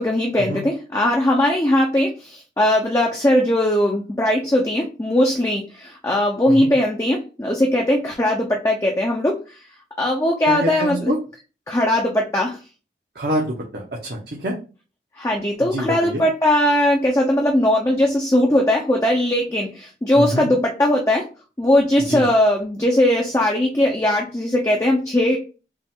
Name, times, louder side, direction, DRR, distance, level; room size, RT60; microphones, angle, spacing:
voice 1, 0.0-9.3 10.0-11.1 11.7-12.6 15.2-21.2 21.6-25.4, left 1 dB, 15° left, 0 dB, 0.5 m, -19 dB
voice 2, 10.5-11.2 13.1-14.5 15.6-16.2 20.2-20.5 22.1-22.3, equal, 60° right, -2 dB, 0.9 m, -26 dB
5.1 x 2.4 x 3.6 m, 0.34 s
head